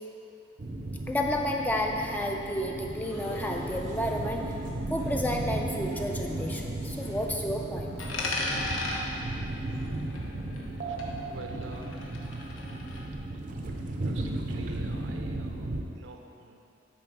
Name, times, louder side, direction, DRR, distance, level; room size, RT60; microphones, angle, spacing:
sound 1, 0.6-15.8, right 1 dB, 40° right, 0.5 m, -35 dB
voice 1, 1.1-4.4 4.9-7.9, left 1 dB, 10° left, 1 dB, 0.4 m, -31 dB
sound 2, 2.9-9.8, left 2 dB, 60° left, 1.8 m, -51 dB
Coin (dropping), 8.0-10.7 11.0-13.0, left 2 dB, 80° left, 1.1 m, -36 dB
voice 2, 11.2-12.3 14.0-16.6, right 2 dB, 80° right, 3 dB, 0.7 m, -47 dB
9.7 x 4.2 x 4.6 m, 2.8 s
head